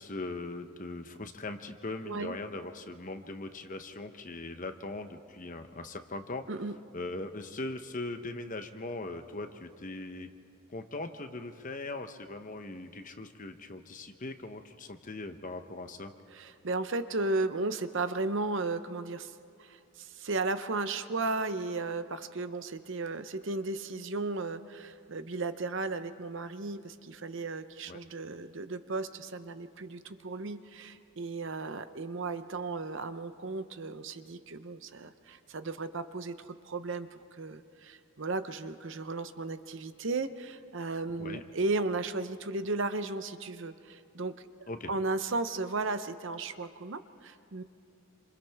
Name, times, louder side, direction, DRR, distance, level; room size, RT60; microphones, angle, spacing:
voice 1, 0.0-6.5 6.9-10.3 10.7-16.1 27.9-28.0 41.2-41.4 44.7-44.9, left 2 dB, 35° left, 7 dB, 0.9 m, -40 dB
voice 2, 2.1-2.4 6.5-6.7 16.3-19.3 19.6-44.5 44.9-47.6, right 3 dB, 55° right, 11 dB, 0.8 m, -35 dB
28.5 x 27.0 x 3.5 m, 2.6 s
head